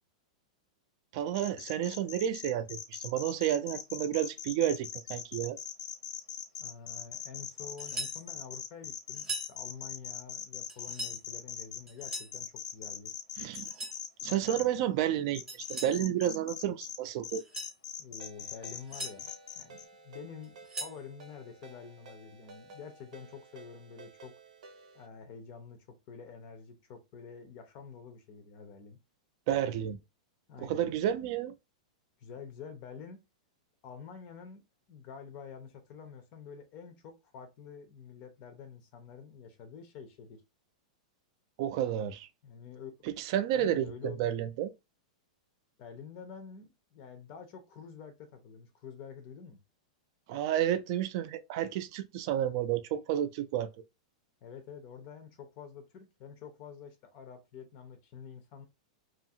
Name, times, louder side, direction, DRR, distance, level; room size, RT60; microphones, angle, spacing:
voice 1, 1.1-5.6 13.4-13.7 14.2-17.4 29.5-30.0 30.6-31.5 41.6-42.3 43.2-44.7 50.3-53.7, right 11 dB, 40° right, 0.4 m, -31 dB
sound 1, 1.3-14.6 15.3-17.0 17.2-19.8, left 8 dB, 85° left, 0.8 m, -41 dB
voice 2, 6.6-13.1 18.0-24.3 24.9-29.0 30.5-30.9 32.2-33.2 33.8-34.6 34.9-40.4 42.4-42.9 43.5-44.5 45.8-49.6 54.4-58.7, left 6 dB, 35° left, 0.5 m, -48 dB
sound 2, 7.8-8.2 9.2-9.5 10.7-11.2 11.9-12.4 13.5-14.0 15.5-16.0 17.3-17.8 18.6-19.2 20.4-21.0, right 1 dB, 15° right, 0.8 m, -40 dB
Ringtone, 18.2-25.1, right 4 dB, 75° right, 0.7 m, -54 dB
2.7 x 2.4 x 2.7 m
supercardioid pair, 160°, 4 cm